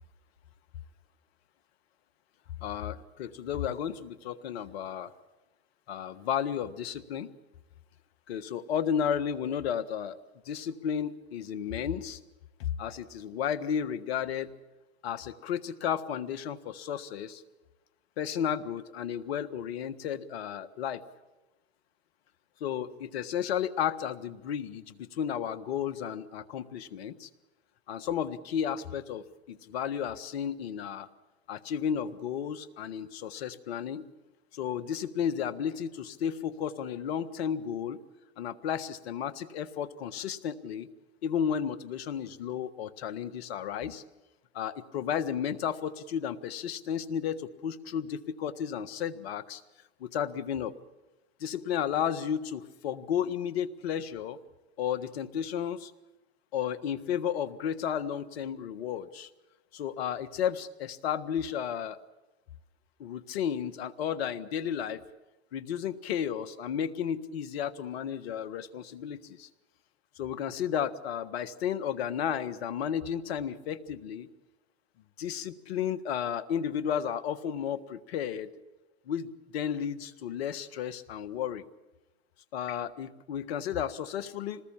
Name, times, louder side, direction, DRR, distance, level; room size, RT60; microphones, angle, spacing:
voice 1, 2.6-5.1 5.9-7.3 8.3-10.2 10.4-12.2 12.6-14.5 15.0-17.4 18.2-21.0 22.6-27.3 27.9-31.1 31.5-34.0 34.5-38.0 38.4-40.9 41.2-44.0 44.5-49.6 50.0-50.7 51.4-54.4 54.8-55.9 56.5-59.3 59.7-62.0 63.0-65.0 65.5-69.5 70.2-74.3 75.2-78.5 79.1-81.6 82.5-84.6, left 8 dB, 75° left, 14 dB, 1.6 m, -33 dB
26.5 x 20.0 x 7.4 m, 1.1 s
hypercardioid pair, 95°, 31 cm